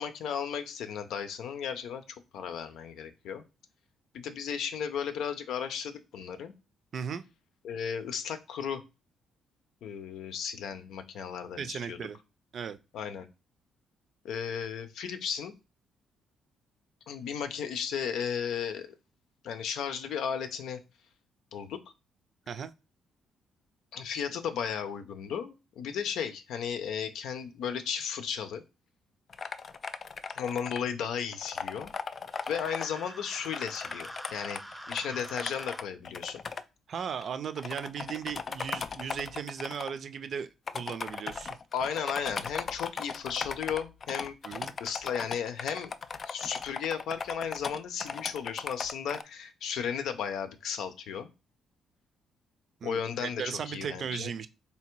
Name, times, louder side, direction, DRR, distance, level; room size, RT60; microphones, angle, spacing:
voice 1, 0.0-2.0 2.3-3.4 4.1-6.5 7.6-8.8 9.8-12.0 12.9-13.3 14.2-15.6 17.1-18.9 19.4-20.8 21.5-21.8 23.9-28.6 30.3-31.9 32.5-36.4 41.7-44.4 44.8-45.9 46.2-51.3 52.8-54.3, left 7 dB, 80° left, 0.6 m, -35 dB
voice 2, 6.9-7.2 11.6-12.2 12.5-12.8 22.5-22.7 36.9-41.6 44.4-44.7 52.8-54.5, right 7 dB, 55° right, 0.5 m, -36 dB
sound 1, 29.3-30.8 31.3-32.9 33.3-36.6 37.2-37.3 37.6-39.9 40.7-49.2, left 5 dB, 45° left, 0.3 m, -38 dB
sound 2, 32.3-35.8, equal, ahead, 0.6 m, -45 dB
3.5 x 2.8 x 4.5 m
cardioid pair, 90°, 0 cm